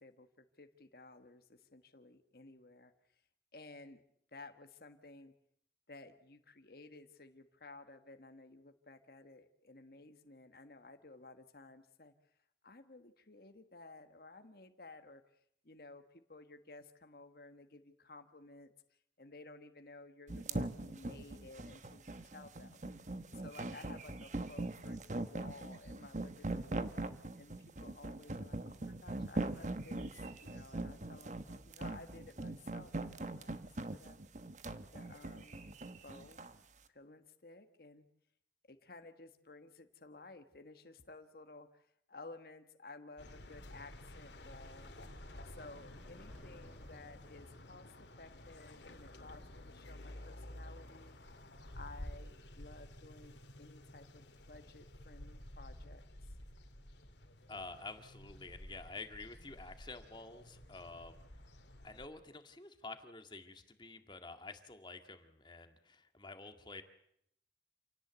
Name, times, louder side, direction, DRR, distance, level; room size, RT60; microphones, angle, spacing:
voice 1, 0.0-3.2 3.5-4.0 4.3-5.3 5.9-12.1 12.6-22.8 23.3-25.0 25.2-26.8 27.3-33.0 33.3-33.5 33.9-34.2 34.9-35.6 36.0-36.4 36.9-38.1 38.6-44.9 45.4-51.2 51.7-56.1, left 3 dB, 60° left, 7 dB, 1.5 m, -55 dB
sound 1, 20.3-36.6, right 2 dB, 45° right, 1.2 m, -41 dB
sound 2, 43.2-62.1, left 1 dB, 90° left, 2.6 m, -52 dB
sound 3, 45.2-48.6, equal, 5° left, 4.5 m, -65 dB
voice 2, 57.5-61.2 61.8-66.8, left 3 dB, 25° left, 7 dB, 2.0 m, -49 dB
28.0 x 17.5 x 8.2 m, 0.72 s
head